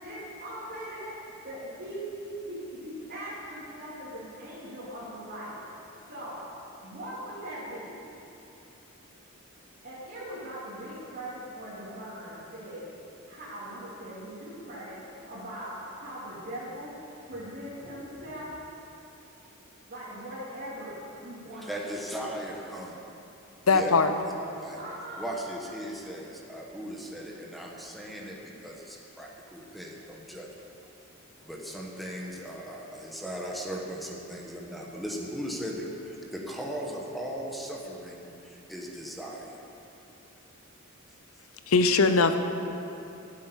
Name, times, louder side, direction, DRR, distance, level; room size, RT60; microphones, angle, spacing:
voice 1, 0.0-1.1 1.4-2.1 2.4-5.6 6.1-6.4 6.8-7.9 9.8-12.9 13.2-17.0 17.2-18.5 19.9-21.6 22.1-22.3 24.7-25.3, right 1 dB, 50° right, -12 dB, 3.1 m, -40 dB
voice 2, 21.4-23.0 23.7-23.9 24.2-24.3 24.6-24.8 25.2-30.5 31.4-39.5, equal, ahead, -2 dB, 1.3 m, -38 dB
voice 3, 23.7-24.1 41.7-42.4, left 4 dB, 75° left, 9 dB, 0.8 m, -20 dB
11.5 x 8.4 x 8.2 m, 2.9 s
head